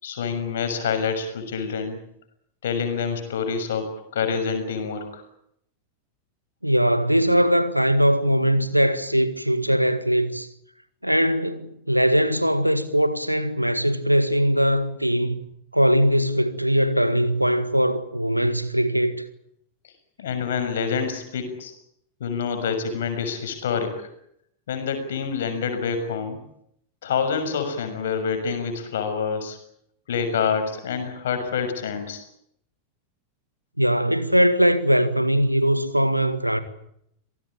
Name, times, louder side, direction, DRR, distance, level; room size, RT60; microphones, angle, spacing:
voice 1, 0.0-2.0 2.6-5.2 20.2-21.7 22.2-24.1 24.7-26.4 27.0-29.6 30.1-32.2, left 6 dB, 60° left, 6.5 m, -27 dB
voice 2, 6.6-10.5 11.0-15.4 15.7-19.2 33.8-36.6, equal, 90° right, 1.9 m, -21 dB
27.0 x 19.0 x 8.9 m
figure-of-eight pair, 90°, 0 cm